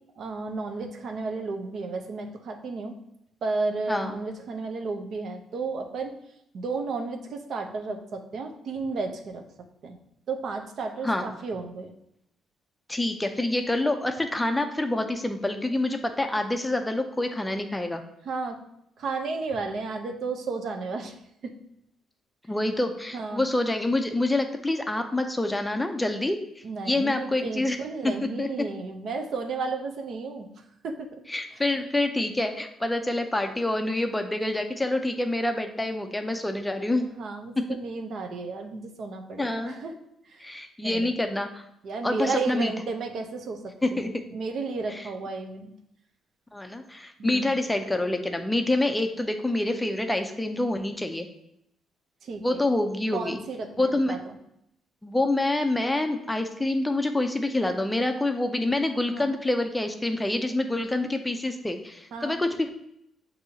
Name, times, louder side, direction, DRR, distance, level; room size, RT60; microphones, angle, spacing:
voice 1, 0.2-2.9 3.4-6.1 6.5-9.4 9.8-10.0 10.3-11.9 18.2-18.6 19.0-21.1 21.4-21.5 23.1-23.5 26.6-30.5 30.8-31.2 31.5-31.6 37.0-40.0 40.3-40.5 40.8-41.2 41.8-43.6 43.9-45.7 47.2-47.6 52.2-52.6 53.1-54.2 59.1-59.3 62.1-62.4, right 4 dB, 65° right, 4 dB, 0.6 m, -33 dB
voice 2, 12.9-18.0 22.5-27.8 28.4-28.5 31.3-37.0 39.4-39.7 40.4-41.6 42.0-42.7 43.8-44.1 45.0-45.1 46.5-51.3 52.4-53.4 53.8-54.2 55.0-62.7, left 2 dB, 10° left, 6 dB, 0.4 m, -27 dB
6.6 x 2.7 x 2.8 m, 0.77 s
cardioid pair, 90°, 0 cm